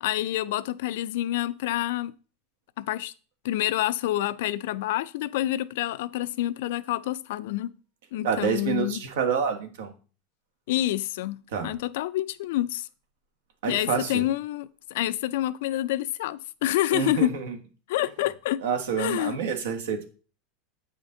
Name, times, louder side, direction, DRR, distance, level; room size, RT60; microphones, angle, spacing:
voice 1, 0.0-2.1 2.8-3.1 3.4-7.7 8.1-9.0 10.7-12.9 13.7-17.3 17.9-18.6 19.0-19.4, left 14 dB, 70° left, 0.4 m, -28 dB
voice 2, 8.2-9.9 11.5-11.7 13.6-14.3 16.9-17.5 18.6-20.1, right 6 dB, 80° right, 1.4 m, -28 dB
8.1 x 5.1 x 3.8 m
supercardioid pair, 155°, 0 cm